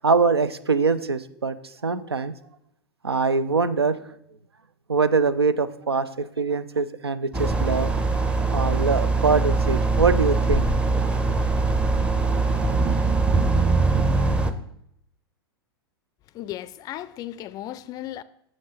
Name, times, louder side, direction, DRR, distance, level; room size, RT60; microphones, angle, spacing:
voice 1, 0.0-1.6 1.8-2.3 3.0-4.0 4.9-7.9 8.5-10.7, right 4 dB, 85° right, 0.5 m, -23 dB
sound 1, 7.3-14.5, right 3 dB, 10° right, 0.6 m, -22 dB
voice 2, 16.3-18.2, left 13 dB, 30° left, 0.4 m, -35 dB
7.6 x 6.2 x 5.0 m
figure-of-eight pair, 95°, 13 cm